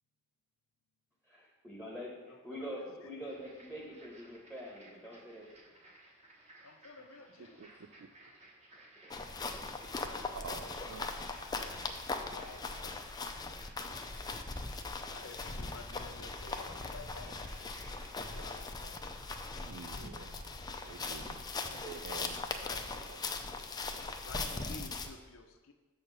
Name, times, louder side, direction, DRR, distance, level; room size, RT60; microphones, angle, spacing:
voice 1, 1.2-5.5 7.7-7.8 9.0-9.2, equal, 5° right, -4 dB, 1.2 m, -45 dB
voice 2, 2.3-3.3 6.6-7.8 12.2-13.3 15.1-19.4 22.6-23.1 24.0-25.7, left 3 dB, 85° left, 6 dB, 0.8 m, -53 dB
sound 1, 3.3-18.6, right 1 dB, 35° right, 1.4 m, -59 dB
voice 3, 7.6-8.1 9.0-9.2 10.3-11.2 19.7-20.5 20.8-22.6 23.1-23.2, right 6 dB, 80° right, 7 dB, 0.4 m, -49 dB
sound 2, 9.1-25.1, left 3 dB, 20° left, 0.5 m, -40 dB
6.6 x 4.4 x 6.7 m, 1.3 s
head